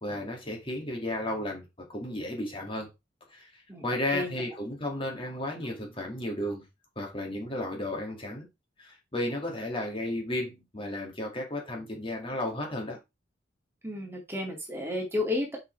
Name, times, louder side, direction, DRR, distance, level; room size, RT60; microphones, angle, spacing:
voice 1, 0.0-2.9 3.3-3.5 3.8-6.6 7.0-8.5 8.8-13.0, left 1 dB, 30° left, 2.3 m, -33 dB
voice 2, 3.7-4.4 13.8-15.6, left 2 dB, 15° right, 2.2 m, -32 dB
5.7 x 5.7 x 4.5 m
head